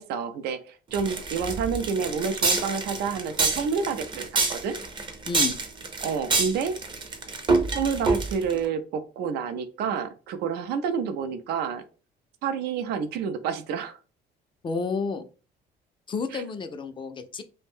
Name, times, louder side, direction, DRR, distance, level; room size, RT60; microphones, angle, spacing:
voice 1, 0.0-4.8 6.0-6.8 7.7-11.8 12.4-14.0 16.3-16.4, right 6 dB, 75° right, 10 dB, 0.4 m, -29 dB
sound 1, 0.9-8.6, right 3 dB, 30° right, 0.5 m, -27 dB
voice 2, 5.3-5.6 14.6-15.3 16.1-17.4, left 4 dB, 30° left, 7 dB, 0.4 m, -30 dB
2.5 x 2.1 x 3.5 m, 0.35 s
cardioid pair, 110°, 17 cm